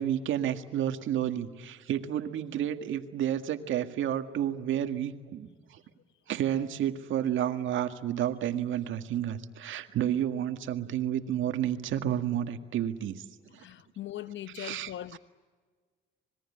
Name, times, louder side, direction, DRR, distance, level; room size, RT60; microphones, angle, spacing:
voice 1, 0.0-5.8 6.3-13.2 13.5-13.6 14.6-15.2, right 10 dB, 80° right, 1.9 m, -31 dB
voice 2, 13.5-15.2, left 12 dB, 70° left, 1.0 m, -40 dB
26.0 x 21.5 x 9.8 m
cardioid pair, 90°, 20 cm